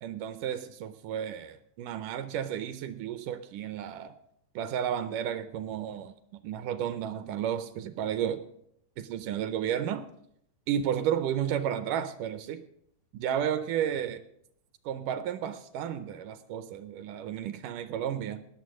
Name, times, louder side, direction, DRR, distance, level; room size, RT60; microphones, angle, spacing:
voice 1, 0.0-4.1 4.6-8.4 9.0-10.1 10.7-12.6 13.1-14.2 14.9-18.4, right 9 dB, 75° right, 2.0 m, -32 dB
18.5 x 7.0 x 6.2 m
omnidirectional pair, 4.0 m